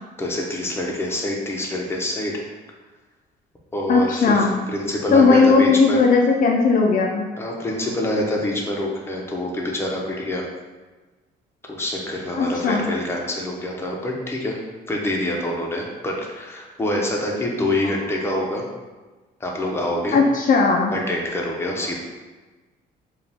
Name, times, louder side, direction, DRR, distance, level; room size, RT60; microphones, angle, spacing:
voice 1, 0.2-2.4 3.7-6.0 7.4-10.5 11.7-14.6 14.9-18.6 19.4-20.2 20.9-22.0, left 1 dB, 15° left, -1 dB, 0.8 m, -26 dB
voice 2, 3.9-4.6 5.1-7.3 12.4-12.8 20.1-20.9 21.8-22.0, left 4 dB, 50° left, 0 dB, 0.5 m, -17 dB
4.9 x 2.5 x 3.5 m, 1.3 s
cardioid pair, 110°, 17 cm